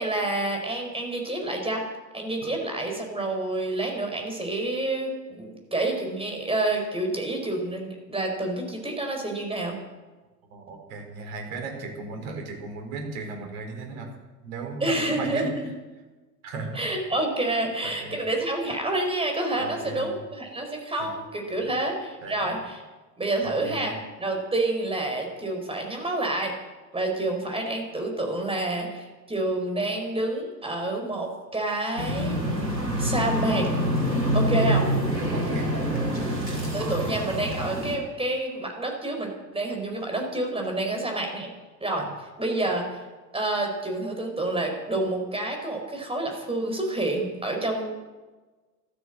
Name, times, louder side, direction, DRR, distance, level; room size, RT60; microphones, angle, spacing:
voice 1, 0.0-1.8 2.1-9.8 14.8-15.7 16.7-22.8 23.2-26.6 26.9-32.4 33.0-33.7 34.3-34.9 36.7-41.5 41.8-43.0 43.3-48.0, right 2 dB, 10° right, 2 dB, 4.9 m, -28 dB
voice 2, 10.5-14.1 14.4-15.6 16.4-16.8 18.0-18.2 19.6-20.2 21.0-21.1 22.2-22.5 23.4-23.9 35.3-35.8, right 3 dB, 55° right, 3 dB, 4.5 m, -36 dB
sound 1, 32.0-38.0, equal, 90° right, 3.2 m, -26 dB
13.5 x 13.0 x 7.7 m, 1.2 s
figure-of-eight pair, 75°, 49 cm